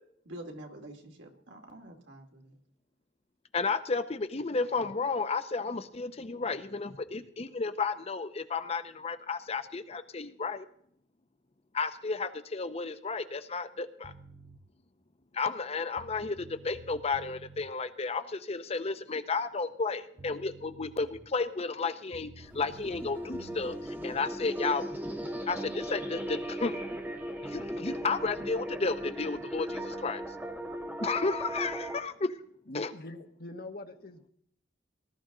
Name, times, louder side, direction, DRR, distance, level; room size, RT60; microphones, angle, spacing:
voice 1, 0.3-2.6, right 1 dB, 80° right, 3 dB, 2.5 m, -47 dB
voice 2, 3.5-10.7 11.7-14.1 15.3-24.8 25.5-26.7 27.4-30.2 31.0-32.4 32.7-32.9, left 4 dB, 35° left, 11 dB, 0.6 m, -32 dB
sound 1, 14.0-14.6 15.6-15.7 16.0-17.7 19.8-19.9 20.2-21.4 22.1-23.8, right 3 dB, 35° right, 0.9 m, -51 dB
sound 2, 22.4-32.0, equal, 10° right, 1.4 m, -37 dB
voice 3, 32.7-34.3, left 1 dB, 55° left, 6 dB, 1.3 m, -43 dB
19.0 x 12.5 x 3.8 m, 0.65 s
head